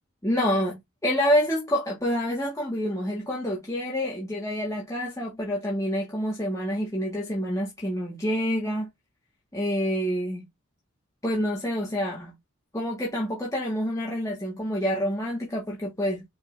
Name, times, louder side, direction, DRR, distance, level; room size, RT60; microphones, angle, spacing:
voice 1, 0.2-8.9 9.5-10.5 11.2-12.3 12.7-16.2, equal, 15° left, 1.5 m, -27 dB
5.2 x 3.8 x 2.5 m
head